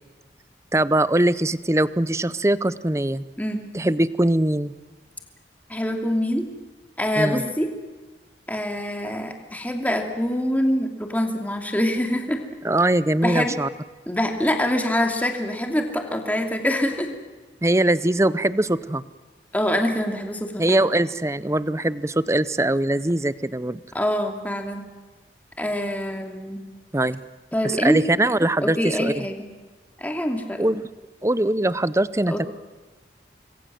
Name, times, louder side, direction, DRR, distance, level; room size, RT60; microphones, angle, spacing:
voice 1, 0.7-3.2 3.7-4.7 7.2-7.4 12.6-13.7 17.6-19.0 20.6-23.8 26.9-27.2 27.6-29.1 30.6-30.8 31.2-32.5, right 1 dB, 15° right, 16 dB, 0.7 m, -21 dB
voice 2, 5.7-6.5 7.0-7.7 8.5-12.4 13.2-13.6 14.1-17.1 19.5-20.9 23.9-24.8 25.6-26.6 27.5-28.0 28.6-29.5 30.0-30.6 32.3-32.5, equal, 10° left, 4 dB, 2.7 m, -25 dB
26.5 x 22.0 x 7.7 m, 1.2 s
head